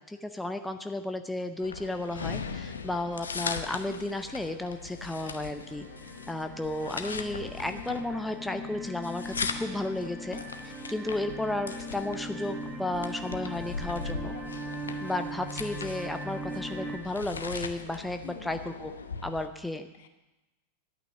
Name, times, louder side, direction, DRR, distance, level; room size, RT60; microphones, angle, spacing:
voice 1, 0.1-5.9 6.3-14.4 15.0-18.9 19.2-19.9, left 2 dB, 5° left, 7 dB, 0.6 m, -33 dB
sound 1, 1.6-19.5, left 5 dB, 70° left, 0.9 m, -39 dB
sound 2, 4.2-4.3 4.7-17.0, right 1 dB, 15° right, 1.6 m, -40 dB
voice 2, 7.6-7.9 14.3-14.8 18.2-18.6 19.9-20.1, left 9 dB, 55° left, 8 dB, 1.2 m, -47 dB
11.5 x 9.1 x 6.6 m, 1.0 s
figure-of-eight pair, 90°, 0 cm